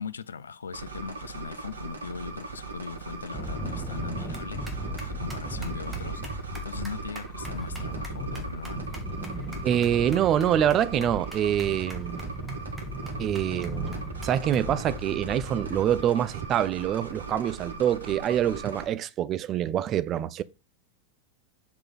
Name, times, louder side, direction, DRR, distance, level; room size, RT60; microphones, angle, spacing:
voice 1, 0.0-6.2 6.6-8.8, left 6 dB, 70° left, 0.6 m, -39 dB
sound 1, 0.7-18.9, right 3 dB, 70° right, 1.7 m, -39 dB
sound 2, 3.3-16.0, right 1 dB, 5° right, 2.5 m, -36 dB
voice 2, 9.6-12.2 13.2-13.9 14.2-20.4, right 10 dB, 30° right, 0.6 m, -25 dB
7.7 x 6.2 x 4.1 m
figure-of-eight pair, 90°, 0 cm